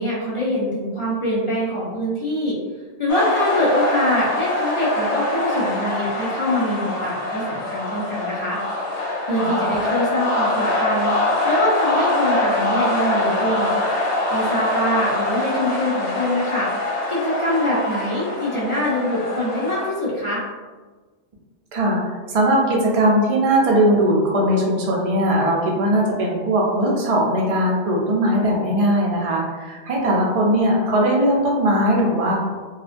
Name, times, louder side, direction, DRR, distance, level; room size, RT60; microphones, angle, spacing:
voice 1, 0.0-2.6 3.0-8.6 9.3-13.7 14.3-16.7 17.1-20.4, left 1 dB, 40° left, -7 dB, 0.4 m, -24 dB
sound 1, 3.1-19.9, left 1 dB, 75° left, 0.9 m, -23 dB
voice 2, 22.3-32.4, right 1 dB, 55° right, -2 dB, 0.4 m, -19 dB
2.4 x 2.1 x 2.5 m, 1.4 s
omnidirectional pair, 1.2 m